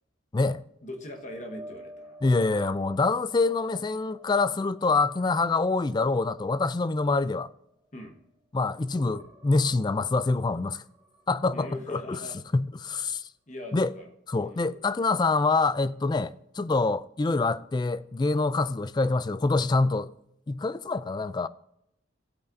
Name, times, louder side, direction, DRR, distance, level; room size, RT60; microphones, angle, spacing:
voice 1, 0.8-2.2 7.9-8.2 11.5-12.4 12.9-13.2 13.5-14.9, left 1 dB, 40° left, 1.3 m, -42 dB
sound 1, 1.0-8.4 8.7-12.6 13.0-13.2 16.6-16.7, equal, 15° right, 2.7 m, -52 dB
voice 2, 2.2-7.5 8.5-10.8 11.3-12.2 12.5-13.3 13.7-13.9 14.3-20.1 20.5-21.5, left 3 dB, 20° left, 0.3 m, -26 dB
17.0 x 8.3 x 2.6 m
head